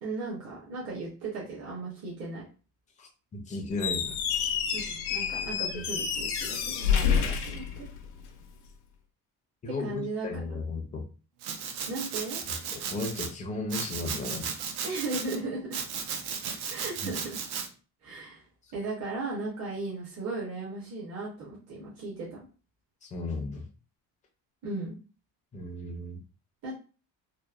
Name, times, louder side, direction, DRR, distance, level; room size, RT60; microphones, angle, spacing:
voice 1, 0.0-2.4 4.7-7.9 9.6-10.6 11.9-12.4 14.8-15.7 16.7-17.2 18.0-18.4 18.7-22.4 24.6-25.0 26.6-26.7, right 3 dB, 40° right, -6 dB, 0.8 m, -36 dB
voice 2, 3.0-4.2 5.7-5.8 9.6-9.9 10.2-11.1 12.7-14.5 17.0-17.1 23.0-23.7 25.5-26.2, left 2 dB, 20° left, 2 dB, 0.4 m, -35 dB
Squeak, 3.7-8.4, left 7 dB, 85° left, 0.6 m, -29 dB
Domestic sounds home sounds, 11.4-13.3 13.7-15.4 15.7-17.7, right 6 dB, 80° right, 0.6 m, -35 dB
2.9 x 2.0 x 2.3 m, 0.36 s
cardioid pair, 165°, 38 cm